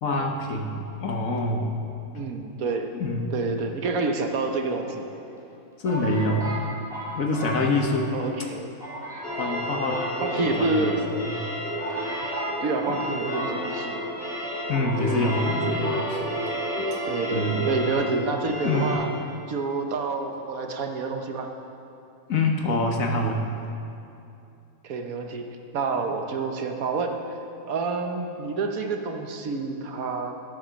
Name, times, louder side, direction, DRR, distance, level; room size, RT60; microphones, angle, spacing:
voice 1, 0.0-1.7 2.9-3.3 5.8-6.5 7.1-8.1 9.3-10.0 10.4-10.9 11.1-11.3 12.9-13.0 14.7-16.2 16.8-17.0 17.3-17.7 18.6-18.9 22.3-23.4, left 2 dB, 65° left, 2 dB, 1.5 m, -26 dB
voice 2, 2.1-2.9 3.3-5.1 8.1-8.8 10.2-11.0 12.6-14.0 17.0-19.1 19.5-21.5 24.8-27.2 27.7-30.3, right 4 dB, 70° right, 4 dB, 1.4 m, -28 dB
sound 1, 4.4-5.2 5.8-8.1 8.4-8.5 8.8-9.6 9.9-10.9 11.4-11.5 11.8-14.1 14.3-14.4 14.7-15.5 15.8-16.0, right 1 dB, ahead, 2.8 m, -35 dB
sound 2, 9.2-18.9, equal, 40° left, 3.9 m, -31 dB
13.0 x 8.5 x 6.3 m, 2.7 s
omnidirectional pair, 1.6 m